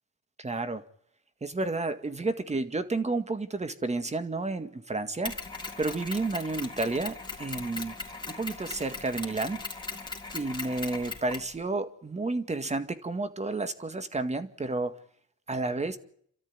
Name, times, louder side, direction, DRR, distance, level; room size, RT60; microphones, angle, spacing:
voice 1, 0.4-0.8 1.4-5.4 5.8-8.0 8.3-9.6 10.3-14.9 15.5-16.0, right 3 dB, 20° right, 10 dB, 2.0 m, -31 dB
Mechanisms, 5.2-11.5, left 3 dB, 15° left, 3.8 m, -39 dB
29.0 x 13.0 x 9.7 m, 0.68 s
cardioid pair, 85°, 30 cm